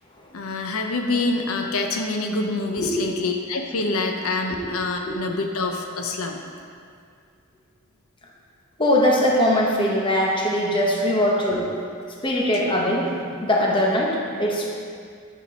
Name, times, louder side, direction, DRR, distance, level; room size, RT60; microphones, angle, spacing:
voice 1, 0.3-6.4, left 3 dB, 85° left, 3 dB, 0.7 m, -26 dB
voice 2, 8.8-11.6 12.2-13.1 13.4-14.7, left 1 dB, 25° left, -3 dB, 1.0 m, -21 dB
10.0 x 4.5 x 5.3 m, 2.2 s
head